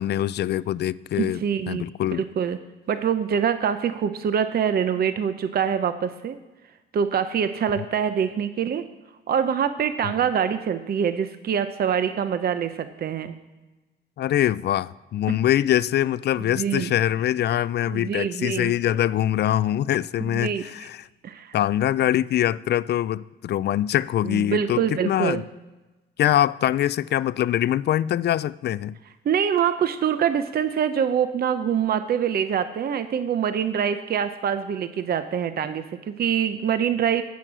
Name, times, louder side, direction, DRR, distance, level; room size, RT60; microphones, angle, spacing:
voice 1, 0.0-1.4 1.7-2.2 7.8-7.9 10.0-10.1 14.2-21.1 21.5-25.4 26.2-29.0, left 12 dB, 55° left, 0.4 m, -23 dB
voice 2, 1.2-1.9 2.2-2.6 2.9-6.4 6.9-8.9 9.3-13.3 16.5-16.9 17.9-18.7 20.2-20.6 21.2-21.6 24.2-25.4 29.2-37.2, right 8 dB, 50° right, 0.7 m, -25 dB
15.5 x 6.3 x 6.1 m
cardioid pair, 90°, 20 cm